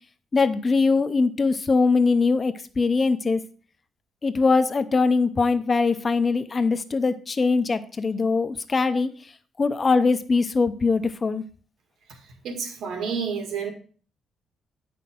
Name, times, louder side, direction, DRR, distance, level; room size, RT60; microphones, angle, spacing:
voice 1, 0.3-3.4 4.2-9.1 9.6-11.4, left 4 dB, 25° left, 0.5 m, -22 dB
voice 2, 12.4-13.7, right 6 dB, 75° right, 2.0 m, -29 dB
9.1 x 6.0 x 3.6 m
cardioid pair, 150°, 0 cm